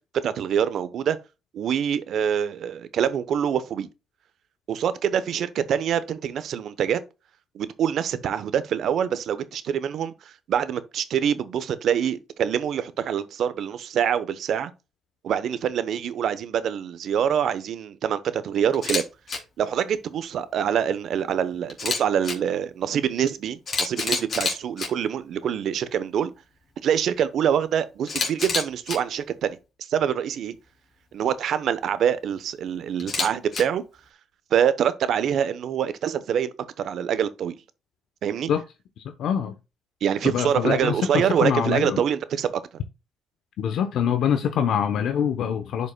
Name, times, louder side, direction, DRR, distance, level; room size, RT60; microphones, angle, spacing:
voice 1, 0.2-1.2 1.5-3.9 4.7-7.0 7.5-14.7 15.2-19.0 19.6-26.3 26.8-29.6 29.9-30.5 31.1-33.8 34.5-37.6 38.2-38.5 40.0-42.5, right 8 dB, 70° right, 0.8 m, -25 dB
Camera, 18.7-19.0 19.3-19.4 21.7-22.3 23.3-23.4 23.7-24.9 28.1-29.0 33.0-33.6, left 4 dB, 45° left, 3.0 m, -27 dB
voice 2, 39.0-39.5 40.2-42.0 43.6-45.9, left 8 dB, 75° left, 0.8 m, -24 dB
11.0 x 5.3 x 2.2 m
cardioid pair, 90°, 0 cm